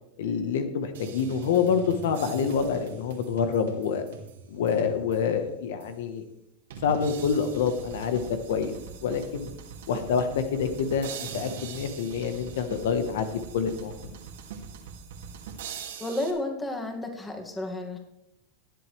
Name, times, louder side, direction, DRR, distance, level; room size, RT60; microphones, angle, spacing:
voice 1, 0.2-4.0 4.5-6.2 6.8-8.7 9.0-9.5 9.9-13.9, left 6 dB, 75° left, 8 dB, 1.2 m, -27 dB
sound 1, 0.9-5.4 5.8-5.9 6.7-16.3, right 6 dB, 85° right, 2.4 m, -42 dB
voice 2, 16.0-18.0, left 1 dB, 10° left, 3 dB, 2.2 m, -32 dB
18.5 x 7.9 x 3.4 m, 0.83 s
supercardioid pair, 120°, 0 cm